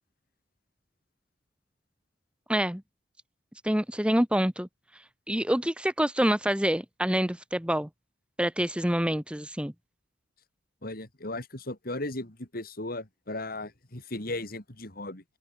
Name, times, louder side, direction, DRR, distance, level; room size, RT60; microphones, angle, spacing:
voice 1, 2.5-2.8 3.6-4.7 5.3-7.9 8.4-9.7, equal, 5° right, 1.7 m, -26 dB
voice 2, 10.8-15.2, left 2 dB, 55° left, 4.1 m, -36 dB
head